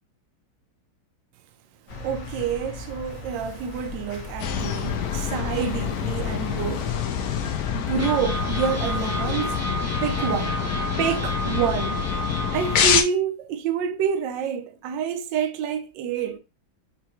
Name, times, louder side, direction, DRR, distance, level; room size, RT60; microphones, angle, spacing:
sound 1, 1.9-9.7, left 2 dB, 45° left, 1.3 m, -39 dB
voice 1, 2.0-6.9 7.7-9.6 10.0-10.6 11.0-12.0 12.5-16.4, right 7 dB, 75° right, 1.2 m, -28 dB
sound 2, 2.7-5.1 5.6-5.7 5.9-6.1 6.7-6.8 7.9-13.0, right 2 dB, 25° right, 0.3 m, -32 dB
sound 3, 4.4-13.0, left 8 dB, 75° left, 0.8 m, -26 dB
5.9 x 2.2 x 2.9 m
omnidirectional pair, 2.2 m